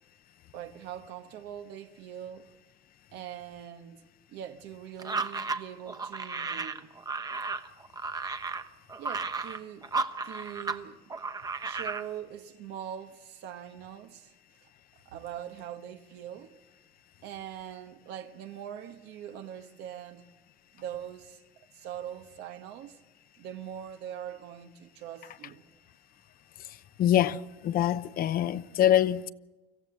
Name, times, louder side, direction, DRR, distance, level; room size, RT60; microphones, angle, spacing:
voice 1, 0.5-2.5 3.1-4.0 4.3-6.9 9.0-9.9 10.2-11.0 11.6-14.3 15.0-16.5 17.2-20.2 20.7-21.4 21.7-23.0 23.4-25.7, right 10 dB, 90° right, 1.2 m, -42 dB
sound 1, 5.0-10.8 11.1-12.1, right 4 dB, 20° right, 1.0 m, -34 dB
voice 2, 27.0-29.3, left 11 dB, 60° left, 0.7 m, -25 dB
25.5 x 15.0 x 8.0 m
cardioid pair, 110°, 17 cm